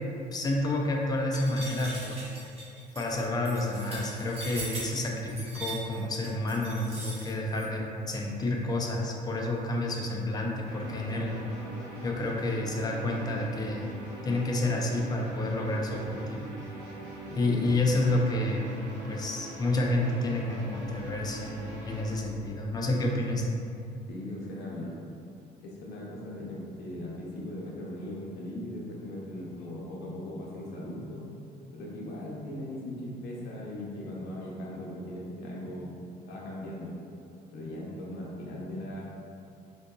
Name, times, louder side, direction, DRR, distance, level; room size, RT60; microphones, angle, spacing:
voice 1, 0.3-2.2 3.0-7.8 8.1-11.3 12.0-13.8 14.2-16.5 17.4-18.7 19.1-23.4, left 2 dB, 25° left, -1 dB, 0.4 m, -29 dB
sound 1, 1.3-7.7, right 1 dB, 40° right, 1.1 m, -40 dB
sound 2, 10.6-22.1, right 2 dB, 85° right, 1.0 m, -42 dB
voice 2, 17.2-17.7 24.1-25.0 25.6-31.2 31.7-35.9 36.2-36.9 37.5-39.0, left 1 dB, 75° left, -4 dB, 0.7 m, -39 dB
3.7 x 2.6 x 2.3 m, 2.4 s
cardioid pair, 110°, 17 cm